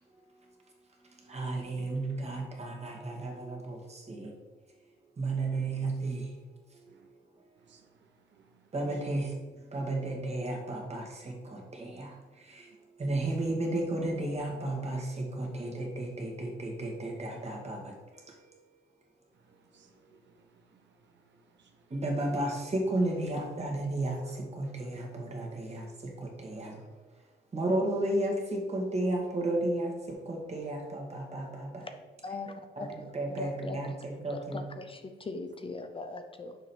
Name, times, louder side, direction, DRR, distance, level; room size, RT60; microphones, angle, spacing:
voice 1, 1.2-4.3 5.2-6.3 8.7-9.3 9.7-12.7 13.0-18.7 21.9-26.9 27.5-31.9 32.8-32.9 33.1-34.6, right 2 dB, 35° right, 0 dB, 1.9 m, -33 dB
voice 2, 7.6-9.0 19.3-21.9 26.4-26.6, right 5 dB, 65° right, 3 dB, 0.9 m, -64 dB
voice 3, 32.2-34.0 34.3-36.6, left 3 dB, 25° left, 6 dB, 0.6 m, -40 dB
6.4 x 5.1 x 4.5 m, 1.3 s
cardioid pair, 90°, 20 cm